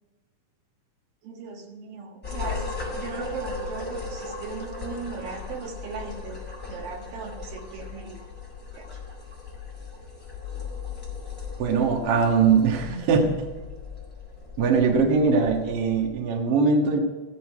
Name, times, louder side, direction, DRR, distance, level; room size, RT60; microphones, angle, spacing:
voice 1, 1.2-6.4 6.7-8.2 8.7-9.0, right 5 dB, 70° right, 2 dB, 3.1 m, -38 dB
sound 1, 2.2-16.1, left 4 dB, 5° left, 3.8 m, -37 dB
voice 2, 11.6-13.3 14.6-17.0, right 5 dB, 50° right, 2 dB, 2.0 m, -21 dB
15.0 x 11.0 x 4.9 m, 1.4 s
omnidirectional pair, 4.3 m